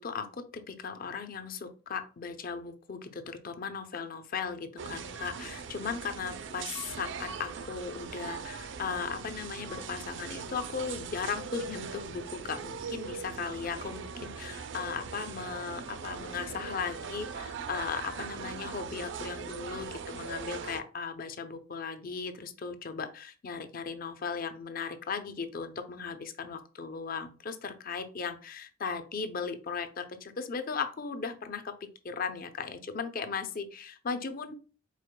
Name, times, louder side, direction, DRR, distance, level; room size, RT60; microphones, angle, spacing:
voice 1, 0.0-31.7 32.0-34.5, left 5 dB, 45° left, 9 dB, 0.5 m, -37 dB
sound 1, 4.8-20.8, right 5 dB, 65° right, 0.4 m, -40 dB
4.8 x 4.2 x 2.2 m, 0.35 s
head